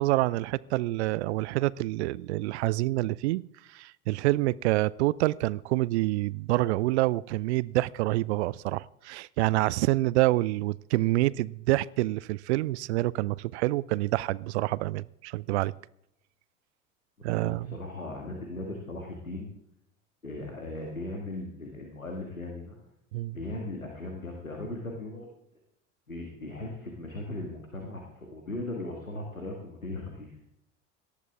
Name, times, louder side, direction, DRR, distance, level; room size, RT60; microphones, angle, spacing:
voice 1, 0.0-3.4 3.7-15.7 17.2-17.8 23.1-23.4, right 18 dB, 55° right, 0.5 m, -27 dB
voice 2, 17.2-19.5 20.2-22.8 23.3-25.3 26.1-30.3, left 2 dB, 85° left, 2.0 m, -38 dB
18.5 x 13.0 x 3.6 m
figure-of-eight pair, 70°, 40 cm